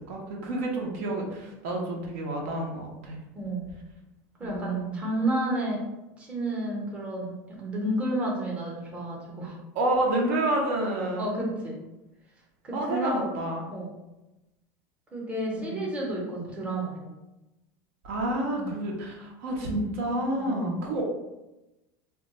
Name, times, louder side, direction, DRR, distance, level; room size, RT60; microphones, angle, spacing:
voice 1, 0.1-3.2 4.4-5.0 9.7-11.3 12.7-13.7 15.6-15.8 18.0-21.1, right 1 dB, 70° right, 0 dB, 0.7 m, -29 dB
voice 2, 3.3-3.7 4.4-5.8 6.2-9.6 11.2-11.8 12.6-13.3 13.7-13.9 15.1-17.1 18.5-18.8 20.4-20.8, right 1 dB, 15° right, -3 dB, 0.7 m, -31 dB
2.3 x 2.2 x 3.9 m, 0.99 s
supercardioid pair, 155°, 8 cm